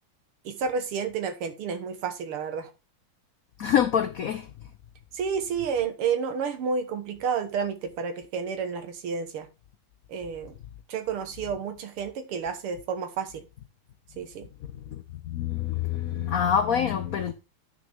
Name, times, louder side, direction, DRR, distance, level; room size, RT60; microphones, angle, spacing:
voice 1, 0.4-2.7 5.1-9.5 10.1-10.5 10.9-13.5 14.2-14.5, right 6 dB, 85° right, 2.2 m, -30 dB
voice 2, 3.6-4.5 14.9-15.0 15.3-17.3, left 9 dB, 90° left, 0.7 m, -25 dB
10.0 x 6.3 x 3.5 m
omnidirectional pair, 2.4 m